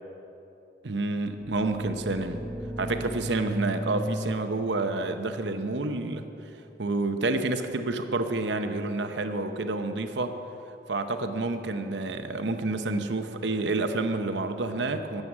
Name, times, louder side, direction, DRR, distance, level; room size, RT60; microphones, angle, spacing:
voice 1, 0.8-2.5 2.8-6.2 6.8-10.3 10.9-15.2, right 2 dB, 75° right, 7 dB, 0.8 m, -29 dB
sound 1, 1.4-6.9, equal, 10° right, 0.4 m, -37 dB
13.5 x 7.7 x 9.6 m, 3.0 s
head